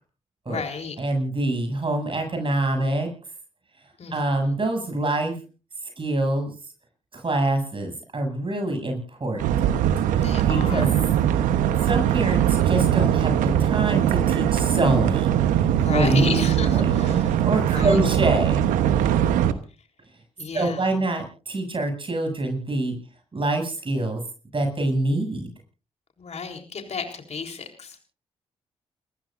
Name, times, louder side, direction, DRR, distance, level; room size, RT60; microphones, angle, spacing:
voice 1, 0.5-1.0 4.0-4.5 10.2-10.9 15.7-17.4 17.7-18.0 19.8-19.9 20.4-21.0 26.2-28.0, left 5 dB, 55° left, 4 dB, 3.9 m, -33 dB
voice 2, 1.0-3.1 4.1-5.4 6.0-6.5 7.1-9.7 10.2-10.9 11.8-16.4 16.7-16.9 17.4-18.6 20.5-23.0 23.3-24.2 24.5-25.5, right 2 dB, 40° right, 4 dB, 7.4 m, -25 dB
sound 1, 9.4-19.5, right 10 dB, 85° right, 1.0 m, -21 dB
29.0 x 15.0 x 2.6 m, 0.35 s
supercardioid pair, 45°, 13 cm